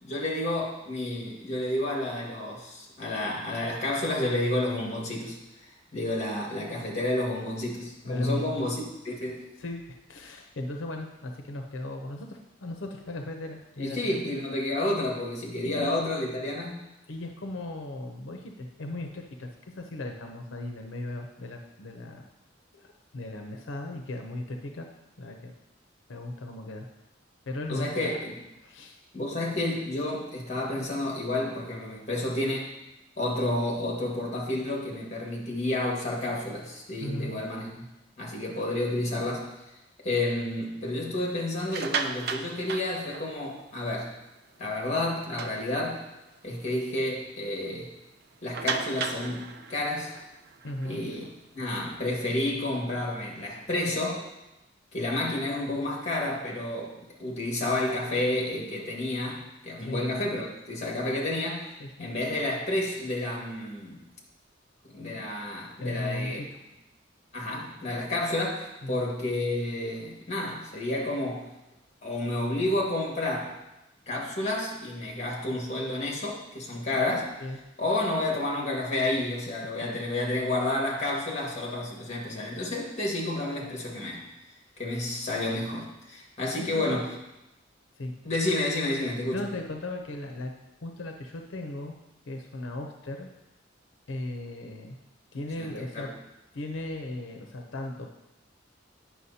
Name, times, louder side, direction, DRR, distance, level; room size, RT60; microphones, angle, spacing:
voice 1, 0.0-5.4 5.9-8.8 9.0-9.4 13.8-16.8 27.7-28.3 29.1-32.7 33.2-37.8 38.2-39.5 40.0-44.1 44.6-46.1 46.4-47.9 48.4-50.1 50.8-51.2 51.5-54.3 54.9-56.9 57.2-61.7 62.0-64.0 64.9-66.4 67.3-71.5 72.0-73.6 74.1-77.3 77.8-84.2 84.8-87.1 88.2-89.4 95.6-96.1, left 1 dB, 35° left, -2 dB, 1.7 m, -30 dB
voice 2, 8.0-8.7 9.6-9.8 10.1-14.2 15.6-16.1 17.1-22.3 22.7-24.9 25.2-25.5 26.1-26.9 27.5-28.1 28.6-29.0 37.0-37.4 50.6-51.0 59.8-60.0 61.8-62.1 65.1-65.3 65.8-66.5 68.8-69.1 77.4-77.6 86.5-86.9 88.0-88.1 89.3-90.5 90.8-92.0 92.2-93.3 94.1-95.0 95.3-96.1 96.5-98.1, left 2 dB, 90° left, 3 dB, 0.6 m, -36 dB
sound 1, 41.5-43.7 44.1-44.3 44.7-44.8 45.2-46.2 46.7-46.8 47.1-47.2 48.5-51.9, right 5 dB, 55° right, 0.5 m, -35 dB
9.4 x 5.9 x 2.8 m, 0.93 s
head